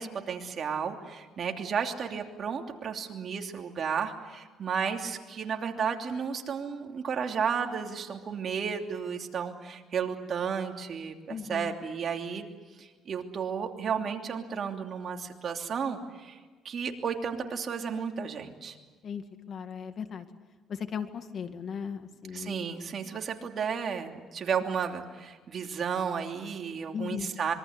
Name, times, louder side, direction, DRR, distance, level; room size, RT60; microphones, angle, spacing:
voice 1, 0.0-12.5 12.8-16.4 16.6-18.8 22.3-27.5, right 6 dB, 50° right, 3 dB, 2.9 m, -33 dB
voice 2, 11.3-11.7 19.0-20.3 20.7-22.7 26.9-27.3, left 7 dB, 50° left, 8 dB, 2.0 m, -37 dB
26.0 x 23.5 x 8.1 m, 1.3 s
cardioid pair, 100°, 0 cm